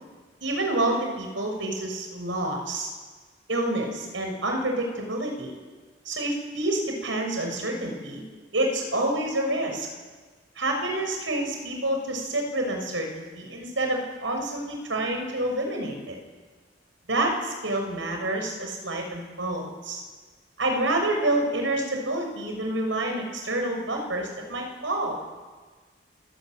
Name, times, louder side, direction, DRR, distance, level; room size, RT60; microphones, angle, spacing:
voice 1, 0.4-2.9 3.5-5.5 6.0-8.2 8.5-9.9 10.6-16.2 17.1-20.0 20.6-25.2, right 1 dB, 85° right, 3 dB, 6.6 m, -28 dB
28.5 x 17.0 x 9.3 m, 1.4 s
head